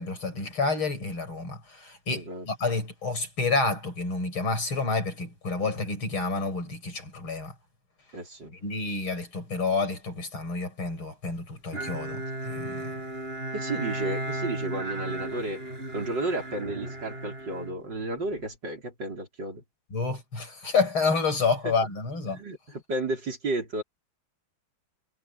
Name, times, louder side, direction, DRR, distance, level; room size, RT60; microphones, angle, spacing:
voice 1, 0.0-7.5 8.6-12.9 19.9-22.4, left 4 dB, 80° left, 6.8 m, -29 dB
voice 2, 2.1-2.5 8.1-8.5 13.5-15.6 15.9-19.6 21.6-21.7 22.3-23.8, right 2 dB, 55° right, 5.8 m, -32 dB
Bowed string instrument, 11.7-18.4, right 1 dB, 25° right, 6.9 m, -35 dB
omnidirectional pair, 2.3 m